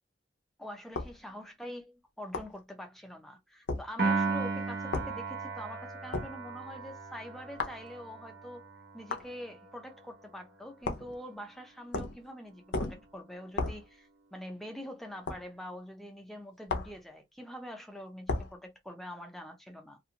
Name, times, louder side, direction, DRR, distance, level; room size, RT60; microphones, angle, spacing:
voice 1, 0.6-8.7 8.9-20.0, equal, ahead, 0.5 m, -45 dB
sound 1, 0.9-1.2 2.3-2.6 3.7-3.9 4.9-5.1 6.1-6.3 7.6-7.8 9.1-9.3 10.8-11.1 11.9-12.2 12.7-13.0 13.6-13.8 15.3-15.4 16.7-17.0 18.3-18.5, left 3 dB, 80° left, 0.6 m, -34 dB
Piano, 4.0-10.4, right 4 dB, 55° right, 0.7 m, -36 dB
2.5 x 2.2 x 2.8 m
head